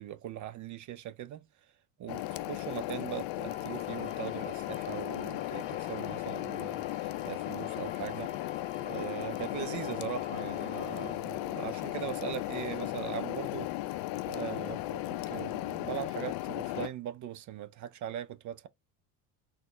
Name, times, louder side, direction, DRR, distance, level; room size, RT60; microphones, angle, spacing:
voice 1, 0.0-1.5 2.0-8.3 8.8-18.7, right 11 dB, 45° right, 0.5 m, -40 dB
sound 1, 2.1-16.9, left 16 dB, 55° left, 0.5 m, -36 dB
sound 2, 3.5-11.2, left 2 dB, 15° left, 1.1 m, -52 dB
4.1 x 2.2 x 3.1 m
hypercardioid pair, 75°, 44 cm